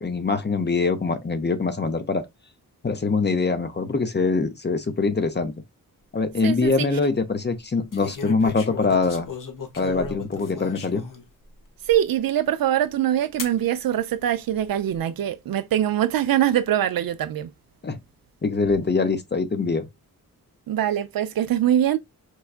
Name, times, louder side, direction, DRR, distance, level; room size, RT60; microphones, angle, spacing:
voice 1, 0.0-2.2 2.8-5.5 6.1-9.3 9.8-11.0 17.8-18.0 18.4-19.9, left 4 dB, 30° left, 0.7 m, -23 dB
sound 1, 6.2-6.7 7.9-11.3 11.9-12.0 13.4-13.6 14.5-15.0, left 5 dB, 60° left, 0.9 m, -36 dB
voice 2, 6.4-6.9 11.9-17.5 20.7-22.0, right 11 dB, 70° right, 0.5 m, -23 dB
4.6 x 2.2 x 2.3 m
cardioid pair, 55°, 36 cm